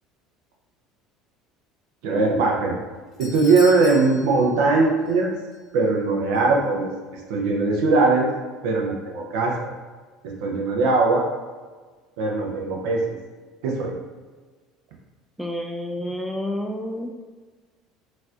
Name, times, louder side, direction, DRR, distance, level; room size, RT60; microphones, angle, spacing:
voice 1, 2.0-2.7 3.2-5.3 5.7-8.3 8.6-9.7 10.2-11.3 12.2-13.0 13.6-13.9, right 3 dB, 70° right, -1 dB, 0.6 m, -20 dB
Doorbell, 2.7-5.2 5.5-5.6 6.4-6.5, left 4 dB, 40° left, 0.9 m, -40 dB
voice 2, 15.4-17.1, left 1 dB, 5° right, 1 dB, 0.4 m, -29 dB
4.0 x 2.5 x 2.4 m, 1.4 s
hypercardioid pair, 70°, 0 cm